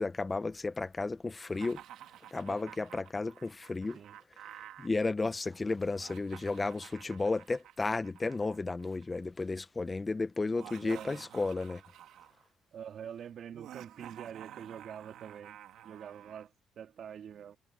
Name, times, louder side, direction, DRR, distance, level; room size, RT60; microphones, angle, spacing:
voice 1, 0.0-1.8 2.3-4.0 4.8-11.8, left 3 dB, 25° left, 0.9 m, -33 dB
Laughter, 1.5-4.9 5.9-9.2 10.4-12.4 13.5-16.5, right 12 dB, 85° right, 2.6 m, -51 dB
voice 2, 10.8-11.2 12.7-15.6 15.8-17.6, right 8 dB, 65° right, 2.8 m, -45 dB
cardioid pair, 90°, 0 cm